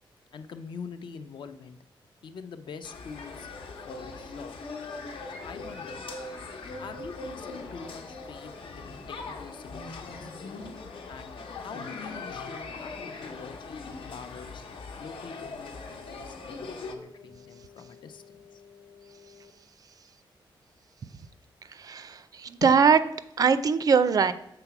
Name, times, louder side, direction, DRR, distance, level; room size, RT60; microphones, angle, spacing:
voice 1, 0.3-1.8 2.2-3.5 3.9-4.5 5.3-6.0 6.8-10.3 11.1-12.9 13.2-14.6 15.0-18.6 22.6-22.7, left 6 dB, 65° left, 9 dB, 0.6 m, -44 dB
sound 1, 2.8-16.9, left 3 dB, 90° left, 1.0 m, -40 dB
sound 2, 6.7-19.5, left 3 dB, 45° left, 0.9 m, -52 dB
voice 2, 21.7-23.0 23.4-24.3, right 6 dB, 45° right, 13 dB, 0.4 m, -21 dB
6.8 x 4.0 x 5.9 m, 0.82 s
wide cardioid pair, 170°, 9 cm